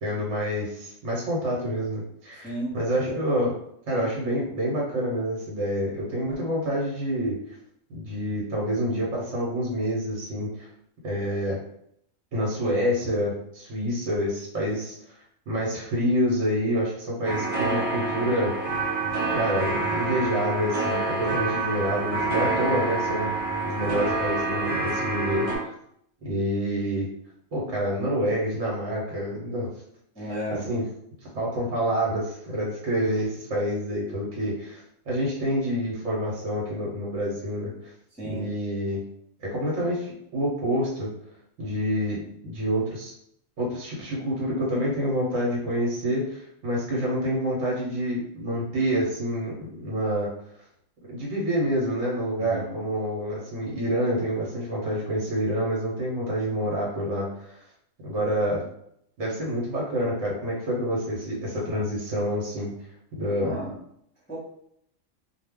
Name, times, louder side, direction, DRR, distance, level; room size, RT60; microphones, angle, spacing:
voice 1, 0.0-3.5 3.9-7.4 7.9-10.7 11.0-11.6 12.3-14.9 15.5-18.5 19.3-23.3 23.6-25.7 26.2-27.1 27.5-29.7 30.2-30.3 30.6-30.8 31.3-37.7 38.2-39.0 39.4-41.1 41.6-43.1 43.6-50.3 51.1-57.5 58.0-58.6 59.2-62.7 63.1-63.6, equal, 70° right, -4 dB, 1.1 m, -27 dB
voice 2, 2.4-2.8 30.1-30.7 38.2-38.5 52.4-52.7 63.4-63.7 64.3-64.4, right 1 dB, 10° left, -8 dB, 0.6 m, -33 dB
sound 1, 17.2-25.6, right 3 dB, 35° right, 0.6 m, -27 dB
2.3 x 2.2 x 3.4 m, 0.72 s
omnidirectional pair, 1.3 m